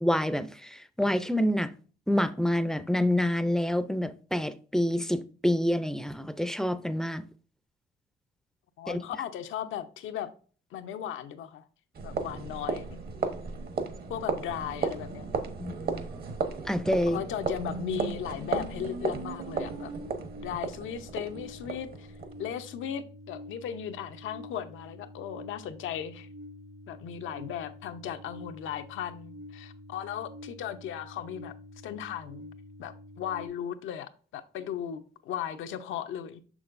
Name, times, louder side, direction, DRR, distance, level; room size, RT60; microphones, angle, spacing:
voice 1, 0.0-1.7 2.1-7.3 8.9-9.0 15.6-15.7 16.7-17.2, left 1 dB, 5° left, 0.5 m, -27 dB
voice 2, 8.8-10.3 10.7-11.6 12.0-13.0 14.1-15.3 17.1-19.9 20.4-22.1 22.4-26.3 26.9-31.5 31.8-32.5 32.8-36.4, left 9 dB, 80° left, 0.7 m, -37 dB
sound 1, 11.9-22.5, right 4 dB, 50° right, 1.1 m, -35 dB
sound 2, 17.6-33.5, right 1 dB, 70° right, 2.7 m, -45 dB
6.4 x 6.2 x 2.6 m
cardioid pair, 90°, 20 cm